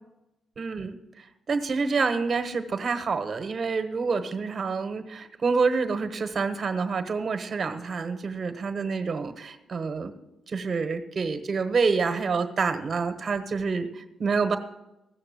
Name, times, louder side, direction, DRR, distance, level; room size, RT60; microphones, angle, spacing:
voice 1, 0.6-10.1 10.5-14.6, right 4 dB, 50° right, 8 dB, 1.2 m, -27 dB
15.5 x 6.6 x 7.5 m, 0.95 s
hypercardioid pair, 45°, 0 cm